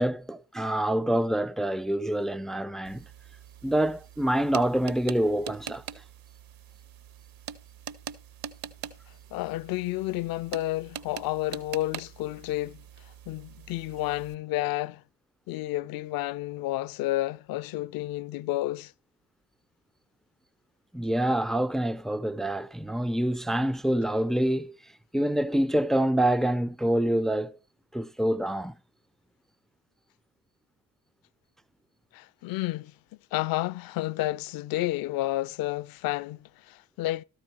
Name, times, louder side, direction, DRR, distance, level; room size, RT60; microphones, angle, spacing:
voice 1, 0.0-3.0 3.6-5.8 20.9-24.8 25.1-27.6 27.9-28.7, right 1 dB, ahead, 0.5 m, -26 dB
sound 1, 2.8-14.4, right 9 dB, 45° right, 1.0 m, -44 dB
voice 2, 9.3-12.8 13.3-15.0 15.5-18.9 32.1-32.9 33.3-37.2, left 16 dB, 50° left, 0.6 m, -31 dB
13.0 x 4.7 x 6.0 m
figure-of-eight pair, 50°, 47 cm